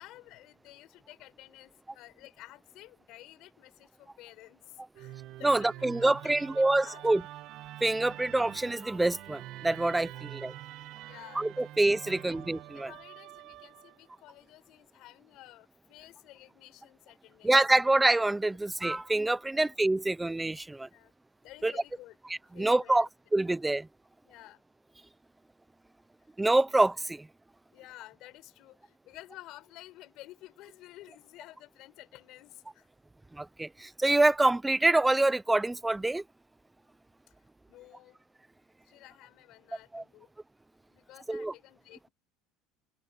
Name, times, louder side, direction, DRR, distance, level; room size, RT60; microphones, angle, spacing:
voice 1, 0.0-7.3 10.1-10.3 11.0-11.4 12.0-12.4 12.7-17.5 19.4-19.7 20.9-21.1 21.4-22.2 22.5-23.1 24.2-24.6 27.7-32.9 37.3-37.4 37.7-38.2 38.8-40.3 40.9-42.1, left 17 dB, 45° left, 5.1 m, -52 dB
Musical instrument, 4.9-14.2, right 14 dB, 45° right, 1.5 m, -46 dB
voice 2, 5.4-7.2 7.8-10.5 11.4-12.9 17.4-20.9 21.6-21.7 22.3-23.9 26.4-27.3 33.3-36.2 39.9-40.0 41.3-41.5, right 2 dB, 5° right, 0.5 m, -26 dB
cardioid pair, 175°, 0 cm